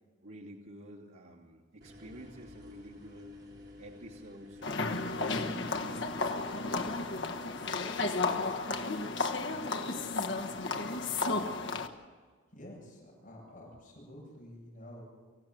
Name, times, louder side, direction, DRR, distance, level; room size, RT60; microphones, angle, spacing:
voice 1, 0.2-3.3 3.8-6.1 6.6-8.4 13.5-13.8, right 1 dB, 85° right, -5 dB, 2.6 m, -51 dB
sound 1, 1.8-6.9, left 2 dB, 50° right, 3.9 m, -51 dB
sound 2, 4.6-11.9, left 3 dB, 60° left, 1.4 m, -33 dB
voice 2, 12.5-15.0, left 1 dB, 40° left, -3 dB, 7.9 m, -49 dB
25.0 x 15.5 x 7.8 m, 1.5 s
head